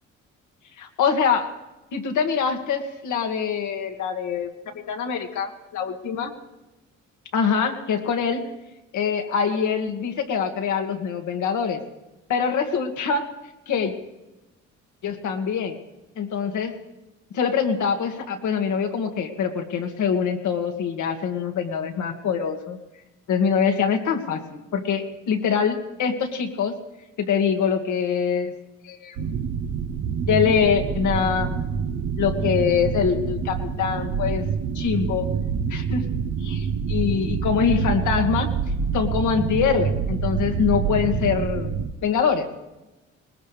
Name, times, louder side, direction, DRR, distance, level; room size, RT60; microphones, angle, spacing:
voice 1, 0.8-1.5 1.9-4.5 4.9-6.3 7.3-8.4 8.9-11.8 12.3-13.2 13.7-13.9 15.0-15.8 16.2-16.7 17.3-22.8 23.3-26.7 27.2-28.5 28.8-29.2 30.3-31.6 32.2-34.4 34.8-35.3 35.7-36.0 36.4-38.5 38.9-42.5, left 6 dB, 75° left, 5 dB, 2.0 m, -24 dB
sound 1, 29.2-41.9, right 6 dB, 80° right, 1.0 m, -26 dB
21.5 x 19.5 x 3.4 m, 1.0 s
cardioid pair, 90°, 30 cm